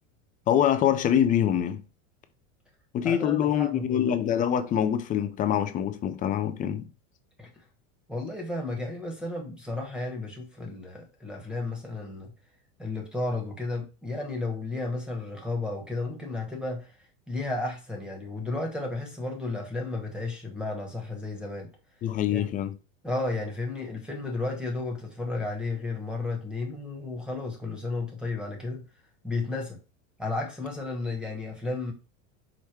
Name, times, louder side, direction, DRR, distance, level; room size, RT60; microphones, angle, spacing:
voice 1, 0.5-1.8 2.9-6.9 22.0-22.7, left 10 dB, 20° left, 0.4 m, -25 dB
voice 2, 3.0-4.1 7.4-7.6 8.1-12.3 12.8-21.7 22.3-22.5 23.0-28.8 29.2-29.8 30.2-31.9, left 2 dB, ahead, 1.0 m, -33 dB
5.0 x 2.1 x 4.4 m
supercardioid pair, 125°, 40 cm